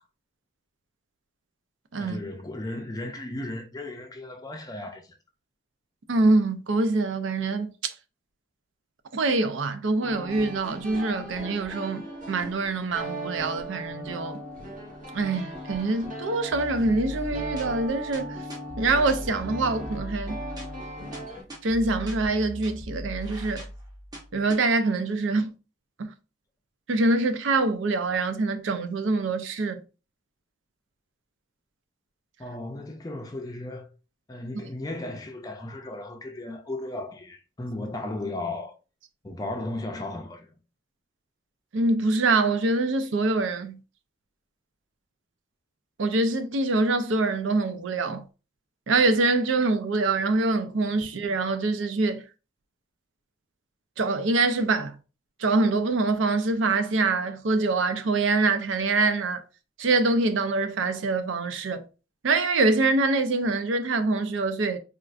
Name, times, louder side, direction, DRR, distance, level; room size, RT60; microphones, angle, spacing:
voice 1, 2.0-5.2 32.4-33.9 34.3-38.7 39.2-40.5 51.0-51.1, left 2 dB, 20° left, 0.4 m, -35 dB
voice 2, 6.1-7.9 9.1-14.4 15.1-18.4 18.8-20.4 21.6-23.7 24.3-25.5 26.0-26.1 26.9-29.8 41.7-43.8 46.0-48.2 48.9-52.2 54.0-55.0 55.4-59.4 59.8-61.8 62.2-64.8, right 3 dB, 80° right, 0.5 m, -25 dB
sound 1, 10.0-21.4, right 1 dB, 40° right, 1.4 m, -38 dB
sound 2, 16.5-24.5, equal, 20° right, 0.7 m, -39 dB
4.3 x 2.4 x 2.4 m
head